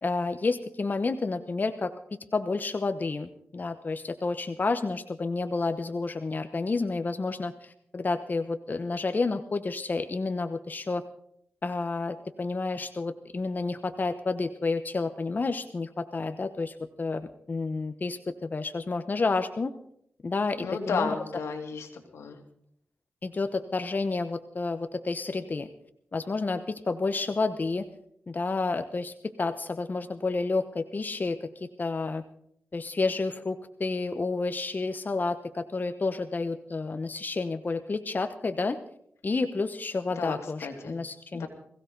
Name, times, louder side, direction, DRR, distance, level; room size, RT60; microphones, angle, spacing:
voice 1, 0.0-1.9 2.3-11.0 11.6-19.7 20.2-21.1 23.2-25.7 26.1-27.8 28.3-32.2 32.7-38.8 39.2-41.5, left 3 dB, 40° left, 9 dB, 1.0 m, -30 dB
voice 2, 20.6-22.4 40.1-41.0 41.3-41.5, left 5 dB, 90° left, 4 dB, 2.6 m, -33 dB
21.5 x 16.0 x 4.0 m, 0.69 s
cardioid pair, 65°, 5 cm